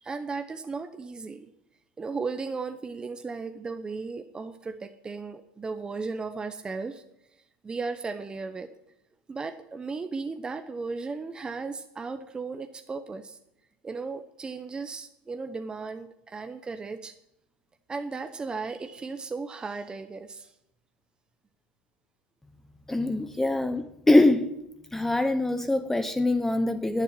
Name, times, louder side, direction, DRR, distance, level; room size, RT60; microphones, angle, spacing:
voice 1, 0.0-1.5 2.0-7.0 7.3-8.7 9.3-13.4 13.8-17.1 17.9-20.5, right 4 dB, 20° right, 8 dB, 0.9 m, -36 dB
voice 2, 22.9-24.5 24.9-27.0, left 2 dB, 10° left, 9 dB, 0.8 m, -23 dB
11.0 x 9.1 x 9.7 m, 0.82 s
supercardioid pair, 110°, 4 cm